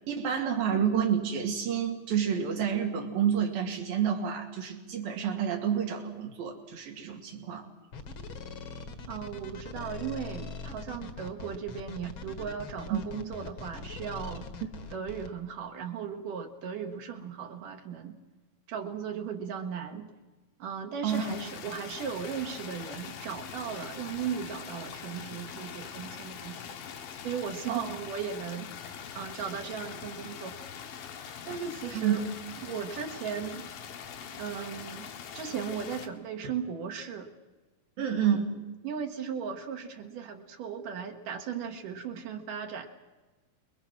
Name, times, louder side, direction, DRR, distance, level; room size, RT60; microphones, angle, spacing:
voice 1, 0.1-7.7 12.9-13.0 21.0-21.3 27.7-28.0 31.9-32.2 38.0-38.5, right 8 dB, 90° right, 3 dB, 4.2 m, -29 dB
sound 1, 7.9-15.3, left 4 dB, 50° left, 1.6 m, -42 dB
voice 2, 9.1-14.5 14.9-18.2 18.7-20.1 20.6-26.8 27.2-28.7 29.1-30.6 31.4-32.3 32.6-33.7 34.3-37.3 38.2-38.4 38.8-42.9, right 7 dB, 75° right, 3 dB, 2.9 m, -37 dB
sound 2, 21.1-36.1, left 7 dB, 80° left, 3.2 m, -43 dB
28.5 x 21.5 x 6.1 m, 1.2 s
omnidirectional pair, 4.0 m